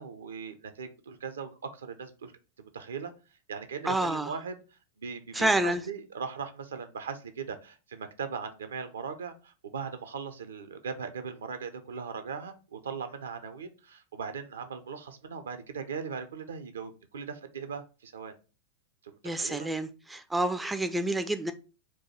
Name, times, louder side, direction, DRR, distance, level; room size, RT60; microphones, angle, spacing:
voice 1, 0.0-3.1 3.5-4.6 5.0-18.3 19.0-19.7, right 6 dB, 65° right, 0.5 m, -39 dB
voice 2, 3.8-4.3 5.3-5.8 19.2-21.5, right 1 dB, 5° right, 0.4 m, -28 dB
4.6 x 2.2 x 4.2 m
figure-of-eight pair, 90°, 0 cm